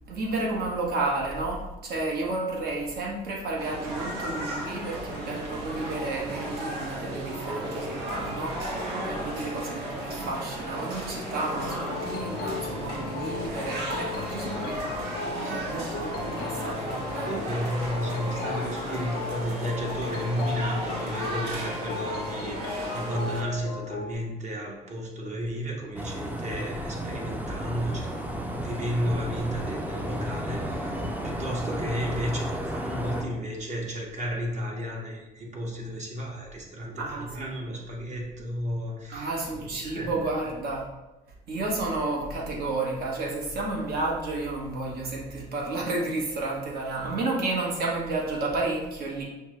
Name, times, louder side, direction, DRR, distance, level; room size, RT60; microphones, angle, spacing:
voice 1, 0.1-17.3 37.0-37.6 39.1-40.9 41.5-49.2, right 2 dB, 65° right, -2 dB, 1.2 m, -31 dB
sound 1, 3.6-23.4, right 1 dB, 85° right, 0.9 m, -35 dB
sound 2, 11.5-24.1, left 5 dB, 65° left, 0.4 m, -36 dB
voice 2, 17.3-40.2, equal, 45° right, -1 dB, 1.1 m, -33 dB
sound 3, 26.0-33.2, equal, 10° right, 0.5 m, -33 dB
5.7 x 2.2 x 3.1 m, 1.0 s
cardioid pair, 110°, 17 cm